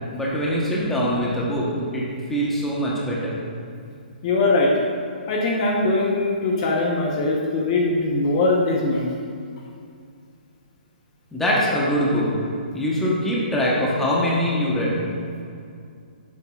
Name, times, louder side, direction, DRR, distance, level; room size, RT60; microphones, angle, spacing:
voice 1, 0.1-1.7 1.9-2.0 2.3-3.4 11.3-12.4 12.7-15.0, equal, 5° left, -6 dB, 1.0 m, -23 dB
voice 2, 4.2-4.7 5.3-9.1, left 2 dB, 35° left, -1 dB, 0.9 m, -21 dB
9.9 x 7.5 x 2.4 m, 2.4 s
hypercardioid pair, 160°, 5 cm